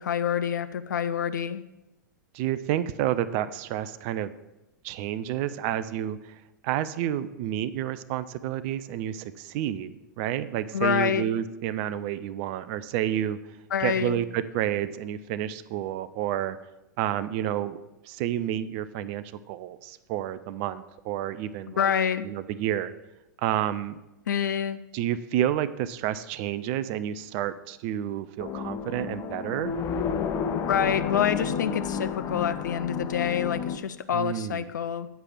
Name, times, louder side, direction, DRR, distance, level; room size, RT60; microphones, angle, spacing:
voice 1, 0.0-1.6 10.7-11.2 13.7-14.2 21.8-22.2 24.3-24.8 30.6-35.1, left 8 dB, 70° left, 12 dB, 0.5 m, -27 dB
voice 2, 2.3-4.3 4.8-6.4 6.6-13.4 13.8-16.6 17.0-21.9 22.2-22.9 23.4-24.0 24.9-29.7 34.1-34.7, right 11 dB, 40° right, 14 dB, 0.5 m, -30 dB
sound 1, 28.4-33.8, left 6 dB, 30° left, 0.7 m, -31 dB
8.2 x 4.9 x 7.1 m, 0.96 s
figure-of-eight pair, 100°, 10 cm